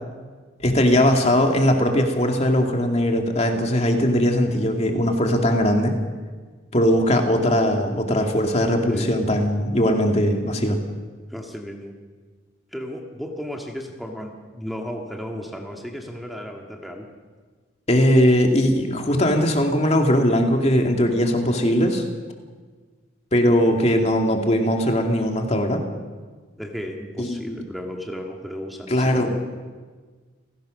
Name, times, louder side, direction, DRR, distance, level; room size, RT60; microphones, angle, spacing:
voice 1, 0.6-6.0 6.7-10.8 17.9-22.0 23.3-25.8 27.2-27.6 28.9-29.3, equal, 35° left, 3 dB, 2.4 m, -20 dB
voice 2, 11.3-12.0 12.7-17.1 26.6-29.4, equal, ahead, 1 dB, 1.9 m, -34 dB
29.5 x 17.0 x 6.5 m, 1.5 s
head